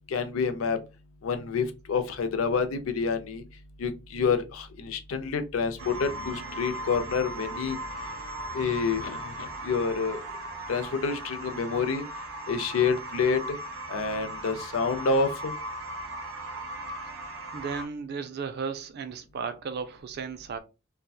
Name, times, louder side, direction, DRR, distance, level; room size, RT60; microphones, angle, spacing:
voice 1, 0.1-0.8 1.2-3.4 3.8-7.8 8.5-10.2 10.7-12.0 12.5-13.6 13.9-15.5, left 5 dB, 75° left, 0.4 m, -28 dB
sound 1, 5.8-17.9, right 1 dB, 80° right, 0.7 m, -38 dB
voice 2, 17.5-20.6, right 5 dB, 50° right, 0.4 m, -35 dB
2.6 x 2.1 x 2.2 m
head